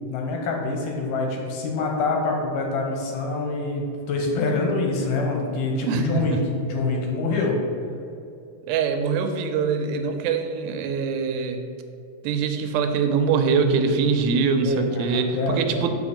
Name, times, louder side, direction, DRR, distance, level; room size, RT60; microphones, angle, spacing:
voice 1, 0.1-7.6 14.6-15.8, left 3 dB, 75° left, 0 dB, 2.4 m, -26 dB
voice 2, 5.9-6.4 8.7-11.6 12.2-15.9, right 5 dB, 90° right, 6 dB, 2.5 m, -23 dB
7.0 x 5.3 x 4.9 m, 2.5 s
omnidirectional pair, 4.1 m